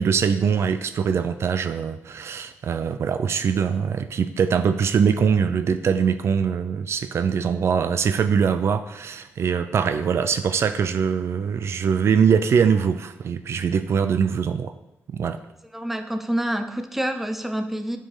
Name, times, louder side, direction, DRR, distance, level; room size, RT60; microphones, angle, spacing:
voice 1, 0.0-14.7 15.1-15.4, right 6 dB, 60° right, 10 dB, 0.5 m, -22 dB
voice 2, 15.7-18.0, right 1 dB, 5° right, 7 dB, 0.7 m, -27 dB
9.0 x 4.6 x 4.9 m, 0.87 s
cardioid pair, 110°, 5 cm